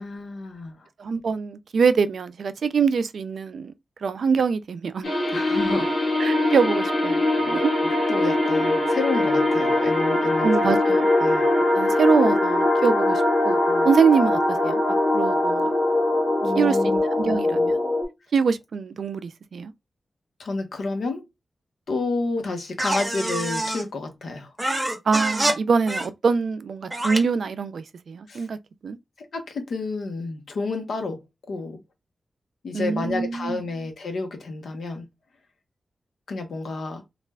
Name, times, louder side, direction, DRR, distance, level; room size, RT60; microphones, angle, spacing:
voice 1, 0.0-0.9 5.3-5.9 7.4-10.5 11.2-11.5 13.7-13.9 16.4-17.5 20.4-21.2 21.9-24.5 28.3-28.5 29.2-31.2 31.5-31.8 32.6-35.0 36.3-37.0, left 3 dB, 85° left, 0.9 m, -30 dB
voice 2, 1.0-3.7 4.0-5.1 6.2-7.2 7.5-7.7 10.4-11.1 11.7-13.6 13.8-14.8 15.1-15.7 16.5-17.8 18.3-19.7 25.1-28.6 28.8-29.0 32.7-33.6, right 5 dB, 75° right, 0.3 m, -24 dB
sound 1, 5.0-18.0, left 1 dB, 45° left, 1.3 m, -22 dB
sound 2, 22.8-23.9 24.6-25.6 25.9-26.1 26.9-27.2, right 1 dB, 15° right, 0.8 m, -26 dB
3.2 x 2.4 x 2.2 m
wide cardioid pair, 120°, 0 cm